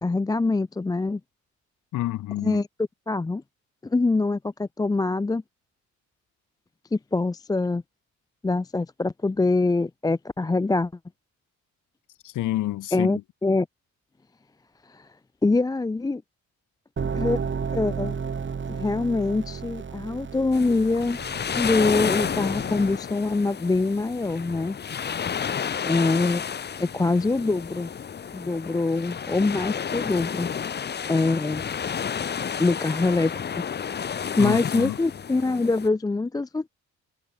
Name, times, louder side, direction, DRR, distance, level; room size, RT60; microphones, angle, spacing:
voice 1, 0.0-1.2 2.4-2.7 3.1-3.4 3.8-5.4 6.9-7.8 8.4-10.9 12.9-13.7 14.9-15.1 15.4-16.2 17.1-17.4 17.7-18.2 18.7-21.2 21.6-24.8 25.8-26.4 26.8-27.9 28.3-30.5 31.1-31.6 32.6-33.6 34.4-36.7, left 3 dB, 15° left, 0.5 m, -24 dB
voice 2, 1.9-2.6 12.2-13.2 34.4-35.0, left 15 dB, 80° left, 1.2 m, -28 dB
sound 1, 17.0-23.0, right 6 dB, 40° right, 4.6 m, -33 dB
sound 2, 20.5-35.9, left 7 dB, 35° left, 0.8 m, -31 dB
cardioid pair, 90°, 30 cm